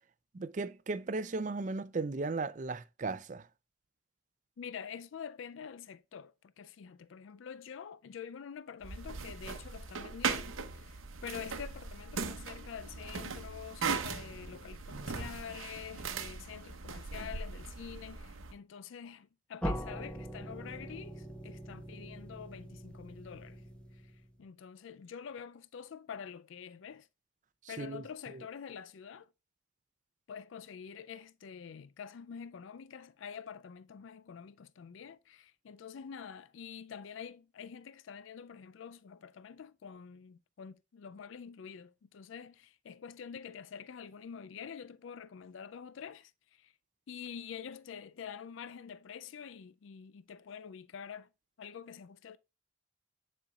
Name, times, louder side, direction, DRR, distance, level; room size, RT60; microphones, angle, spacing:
voice 1, 0.3-3.5 27.6-28.0 28.3-28.4, right 3 dB, 40° right, 0.4 m, -36 dB
voice 2, 4.6-23.6 23.9-27.1 27.7-29.3 30.3-46.7 47.1-51.3 51.6-52.4, left 7 dB, 75° left, 0.4 m, -47 dB
sound 1, 8.8-18.5, right 5 dB, 85° right, 0.8 m, -39 dB
sound 2, 19.6-24.4, equal, 5° left, 0.8 m, -42 dB
9.7 x 4.4 x 2.3 m
head